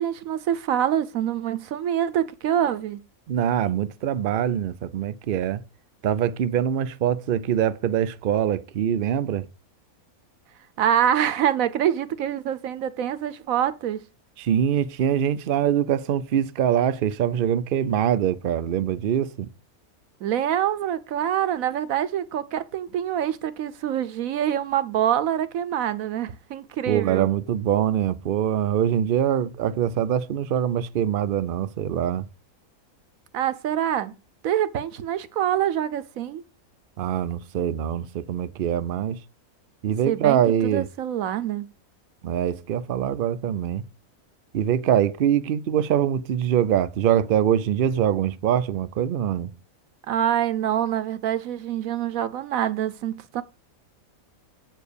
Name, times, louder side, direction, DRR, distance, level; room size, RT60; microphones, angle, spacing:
voice 1, 0.0-3.0 10.8-14.0 20.2-27.3 33.3-34.1 34.4-36.4 40.1-40.4 40.7-41.7 50.1-53.4, right 10 dB, 75° right, 1.1 m, -25 dB
voice 2, 3.3-5.6 6.0-9.4 14.4-19.5 26.9-32.2 37.0-39.2 39.8-40.9 42.2-43.8 44.5-49.5, right 9 dB, 55° right, 0.6 m, -23 dB
8.0 x 4.6 x 6.8 m
omnidirectional pair, 1.5 m